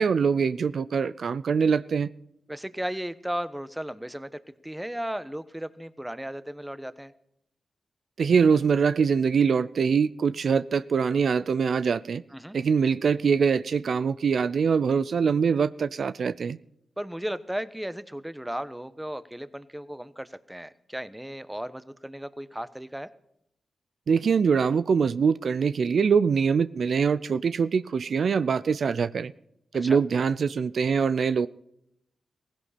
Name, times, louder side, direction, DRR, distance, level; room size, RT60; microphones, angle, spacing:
voice 1, 0.0-2.1 8.2-12.2 12.5-16.6 24.1-29.3 29.7-31.5, right 6 dB, 70° right, 0.5 m, -23 dB
voice 2, 2.5-7.1 12.3-12.6 17.0-23.1 29.8-30.0, equal, 10° right, 1.1 m, -35 dB
17.0 x 16.0 x 4.3 m
cardioid pair, 55°, 0 cm